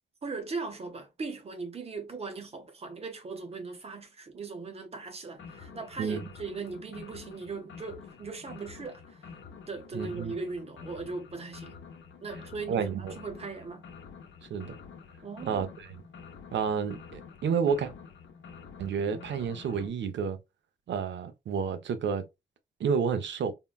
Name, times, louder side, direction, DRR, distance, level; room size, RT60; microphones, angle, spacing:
voice 1, 0.2-9.3 9.7-11.8 12.2-13.8 15.2-15.7, right 4 dB, 35° right, 0.6 m, -39 dB
sound 1, 5.3-19.9, left 5 dB, 85° left, 0.7 m, -48 dB
voice 2, 9.9-10.3 12.7-13.1 14.5-14.7 15.4-15.9 16.5-17.9 18.8-20.4 20.9-22.2 22.8-23.5, right 6 dB, 75° right, 0.5 m, -30 dB
3.6 x 2.1 x 2.2 m
wide cardioid pair, 150°, 19 cm